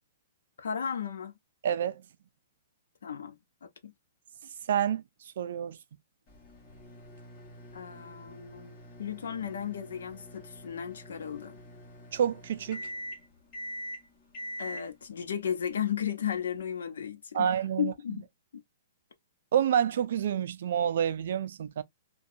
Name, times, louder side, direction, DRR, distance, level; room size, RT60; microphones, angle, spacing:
voice 1, 0.6-1.3 3.0-3.3 3.6-3.9 7.7-11.6 14.6-17.5 17.8-18.2, left 8 dB, 90° left, 0.7 m, -34 dB
voice 2, 1.6-2.0 4.7-5.0 5.4-5.8 12.1-12.8 17.3-17.9 19.5-21.8, right 9 dB, 55° right, 0.4 m, -28 dB
sound 1, 6.3-16.6, equal, 25° left, 1.3 m, -45 dB
2.7 x 2.2 x 2.4 m
hypercardioid pair, 170°, 0 cm